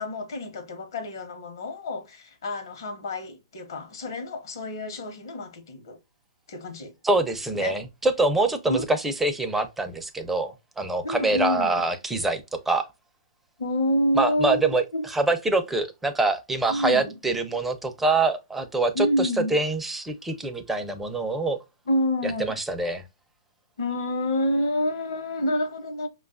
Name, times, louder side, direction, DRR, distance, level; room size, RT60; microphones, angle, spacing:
voice 1, 0.0-6.0 6.5-6.9 7.5-7.7 8.7-8.8 11.0-11.8 13.6-15.0 16.7-17.1 18.9-19.6 21.9-22.6 23.8-26.1, left 1 dB, 70° left, 0.9 m, -28 dB
voice 2, 7.0-12.9 14.2-14.8 15.1-21.6 22.2-23.0, right 2 dB, 5° right, 0.5 m, -25 dB
4.9 x 2.3 x 2.3 m
hypercardioid pair, 130°, 2 cm